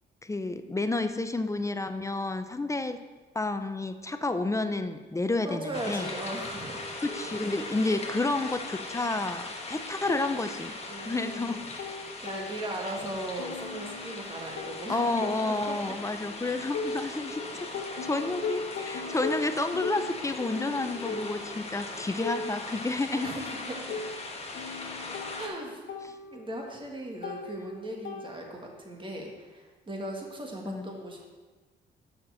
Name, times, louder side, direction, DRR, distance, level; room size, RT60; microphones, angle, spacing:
voice 1, 0.2-3.1 3.3-6.1 7.0-10.7 11.0-11.7 14.9-17.7 18.0-23.3 26.0-26.1 30.7-30.9, left 2 dB, 15° left, 9 dB, 0.5 m, -30 dB
sound 1, 5.4-9.5 13.6-15.1 16.0-21.5, equal, 5° right, 1.8 m, -49 dB
voice 2, 5.4-6.9 10.9-11.7 12.2-15.8 23.2-24.1 25.4-25.8 26.3-31.2, right 1 dB, 25° right, 0 dB, 1.8 m, -38 dB
sound 2, 5.7-25.5, left 3 dB, 30° left, 1.4 m, -40 dB
sound 3, 10.1-11.2 11.5-13.0 13.4-17.4 17.7-28.8, left 4 dB, 80° left, 1.0 m, -40 dB
7.1 x 5.9 x 6.4 m, 1.3 s
cardioid pair, 90°, 20 cm